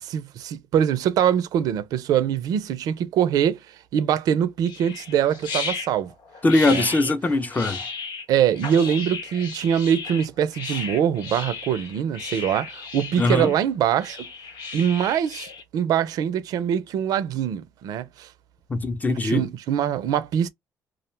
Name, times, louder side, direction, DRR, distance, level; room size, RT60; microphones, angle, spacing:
voice 1, 0.0-3.6 3.9-6.1 6.7-6.9 8.3-14.3 14.7-15.5 15.7-18.3 19.2-20.5, right 9 dB, 80° right, 0.5 m, -23 dB
sound 1, 4.6-15.6, left 5 dB, 90° left, 1.1 m, -35 dB
voice 2, 6.4-7.8 13.2-13.5 18.7-19.5, left 2 dB, 25° left, 0.7 m, -21 dB
2.4 x 2.1 x 3.1 m
cardioid pair, 80°, 6 cm